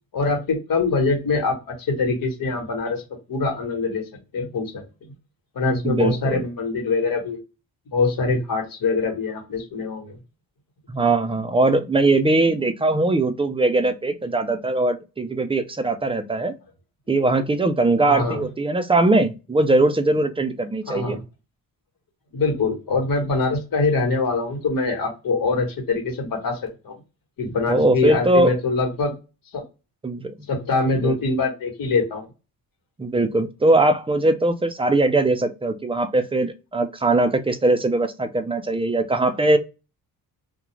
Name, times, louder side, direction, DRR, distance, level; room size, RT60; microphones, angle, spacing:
voice 1, 0.1-3.0 3.3-4.0 4.3-4.8 5.5-7.4 7.9-10.1 18.1-18.5 20.9-21.2 22.3-26.6 26.8-26.9 27.4-29.1 29.5-29.6 30.5-32.3, left 3 dB, 60° left, 1.3 m, -23 dB
voice 2, 5.8-6.4 10.9-16.6 17.1-21.2 27.7-28.5 30.0-30.3 31.0-31.2 33.0-39.6, right 2 dB, 15° right, 0.4 m, -20 dB
2.4 x 2.1 x 3.0 m
cardioid pair, 85°, 38 cm